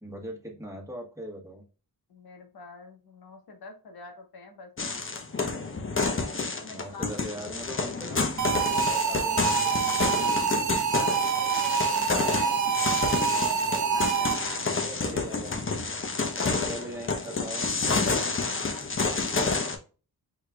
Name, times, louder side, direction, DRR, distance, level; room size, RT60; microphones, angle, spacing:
voice 1, 0.0-1.6 6.5-8.3 8.8-10.4 14.5-15.9 16.4-17.7, right 1 dB, 10° right, -1 dB, 1.4 m, -41 dB
voice 2, 2.1-4.7 6.4-7.2 11.3-14.8 16.4-16.6 18.5-18.9, left 3 dB, 90° left, 4 dB, 1.3 m, -46 dB
sound 1, 4.8-19.8, left 4 dB, 35° left, 0.9 m, -29 dB
sound 2, 8.4-14.7, right 6 dB, 55° right, 0.6 m, -26 dB
4.9 x 4.2 x 2.3 m, 0.35 s
wide cardioid pair, 120°, 36 cm